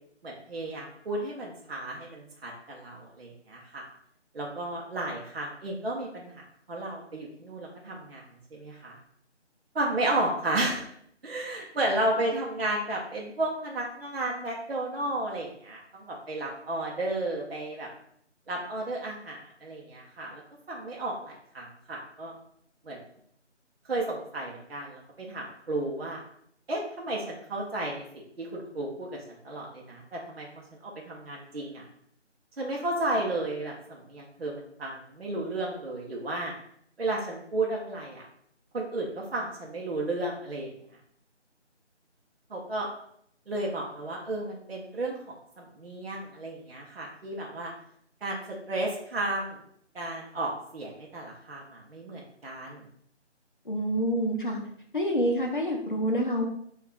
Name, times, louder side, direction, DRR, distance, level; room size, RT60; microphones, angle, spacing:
voice 1, 0.2-3.8 4.3-6.4 6.7-8.2 8.5-9.0 9.7-10.8 11.2-17.9 18.5-20.4 20.7-22.3 22.8-23.0 23.9-26.2 26.7-28.0 28.4-29.2 29.4-30.5 30.8-31.8 32.6-36.5 37.0-38.2 38.7-40.7 42.5-42.9 43.5-47.7 48.2-49.6 49.9-52.8, right 2 dB, 55° right, -2 dB, 0.6 m, -33 dB
voice 2, 53.7-54.6 54.9-56.4, equal, 45° left, 1 dB, 0.5 m, -27 dB
2.9 x 2.3 x 3.5 m, 0.69 s
figure-of-eight pair, 170°, 36 cm